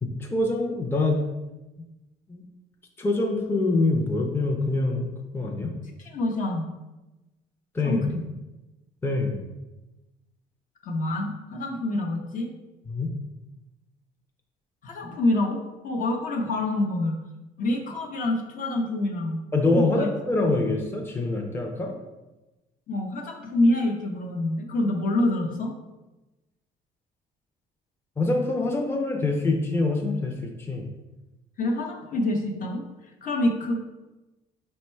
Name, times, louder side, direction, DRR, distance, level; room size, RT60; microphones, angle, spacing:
voice 1, 0.0-1.2 2.3-2.4 3.0-5.7 7.7-8.0 9.0-9.4 12.9-13.1 19.5-21.9 28.2-30.8, left 2 dB, 15° left, 1 dB, 0.5 m, -25 dB
voice 2, 6.0-6.6 7.8-8.2 10.8-12.5 14.8-17.2 17.6-19.4 19.7-20.1 22.9-25.7 31.6-32.8 33.2-33.8, left 1 dB, 50° left, 2 dB, 0.7 m, -26 dB
4.5 x 2.1 x 4.3 m, 1.1 s
cardioid pair, 110°, 17 cm